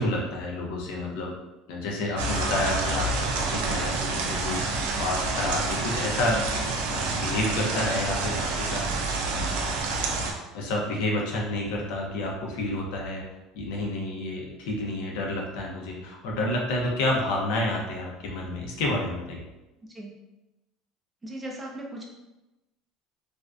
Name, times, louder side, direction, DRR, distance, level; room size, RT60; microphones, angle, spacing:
voice 1, 0.0-1.3 1.7-8.8 9.3-9.5 10.0-10.1 10.5-13.2 13.6-19.4, left 1 dB, 80° left, -2 dB, 0.6 m, -30 dB
sound 1, 2.2-10.3, right 3 dB, 90° right, 0.4 m, -28 dB
voice 2, 21.2-22.0, right 1 dB, 15° right, -2 dB, 0.4 m, -37 dB
2.5 x 2.1 x 2.3 m, 1.0 s
cardioid pair, 130°, 0 cm